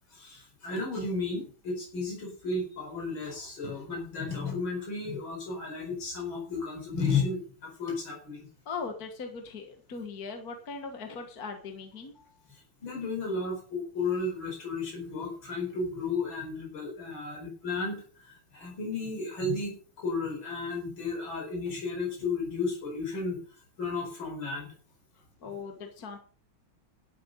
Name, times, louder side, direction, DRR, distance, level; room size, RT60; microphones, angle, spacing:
voice 1, 0.1-8.5 12.5-23.4 23.8-24.7, left 3 dB, 70° left, 0 dB, 5.3 m, -33 dB
voice 2, 8.7-12.1 25.4-26.2, left 4 dB, 50° left, 5 dB, 1.9 m, -39 dB
12.5 x 8.6 x 5.4 m, 0.41 s
omnidirectional pair, 2.2 m